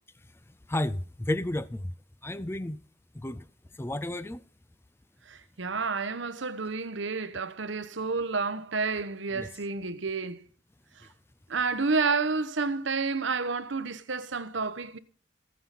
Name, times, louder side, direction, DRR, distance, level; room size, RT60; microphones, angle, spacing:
voice 1, 0.7-1.9 2.2-2.8 3.2-3.4 3.8-4.4 9.3-9.5, left 1 dB, 10° left, 0.4 m, -31 dB
voice 2, 5.6-10.4 11.5-15.0, right 4 dB, 70° right, 1.0 m, -30 dB
15.5 x 9.4 x 4.2 m
head